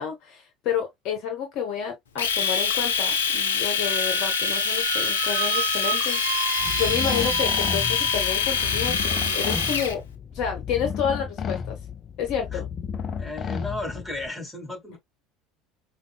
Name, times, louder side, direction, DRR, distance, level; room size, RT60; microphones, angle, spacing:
voice 1, 0.0-10.0 10.3-11.8 12.2-12.7, left 8 dB, 55° left, 1.1 m, -30 dB
Domestic sounds home sounds, 2.2-9.9, left 6 dB, 75° left, 0.6 m, -25 dB
Squeak, 3.8-9.9, right 13 dB, 65° right, 0.3 m, -33 dB
sound 1, 6.6-14.3, left 6 dB, 35° left, 0.5 m, -33 dB
voice 2, 13.2-15.0, left 2 dB, 5° left, 2.1 m, -34 dB
5.1 x 2.2 x 2.3 m
figure-of-eight pair, 70°, 0 cm